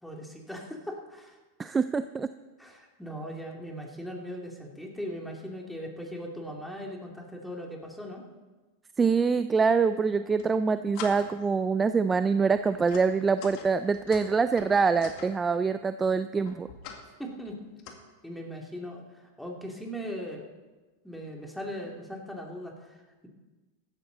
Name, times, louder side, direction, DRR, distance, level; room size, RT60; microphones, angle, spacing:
voice 1, 0.0-1.4 2.6-8.2 17.2-17.6 18.2-20.5 21.0-23.3, equal, 5° left, 0 dB, 2.7 m, -39 dB
voice 2, 1.6-2.3 9.0-16.7, right 5 dB, 20° right, 12 dB, 0.4 m, -25 dB
sound 1, 10.1-10.5 10.9-11.5 11.9-12.1 12.6-15.3 16.4-17.0 17.4-17.9, left 6 dB, 55° left, 2.0 m, -44 dB
15.5 x 12.5 x 4.0 m, 1.2 s
hypercardioid pair, 100°, 0 cm